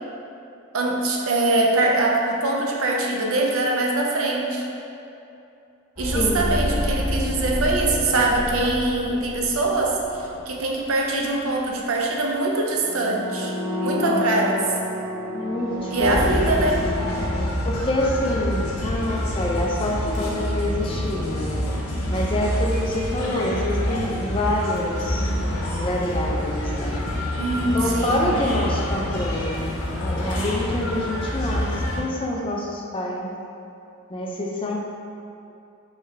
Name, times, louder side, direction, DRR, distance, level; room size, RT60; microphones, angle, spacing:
voice 1, 0.7-4.6 6.0-13.5 13.8-14.6 15.9-16.8 27.4-28.4, right 2 dB, 70° right, -1 dB, 0.5 m, -23 dB
sound 1, 6.0-10.8 11.1-11.3 12.7-17.3, left 1 dB, 15° right, 1.4 m, -29 dB
voice 2, 6.1-6.6 13.9-14.8 15.3-16.2 16.5-16.6 17.6-21.6 22.1-27.0 27.7-33.3 34.1-34.8, left 1 dB, 25° left, -1 dB, 0.3 m, -27 dB
sound 2, 16.0-32.0, left 1 dB, 80° left, 0.7 m, -27 dB
3.5 x 3.2 x 3.3 m, 2.7 s
head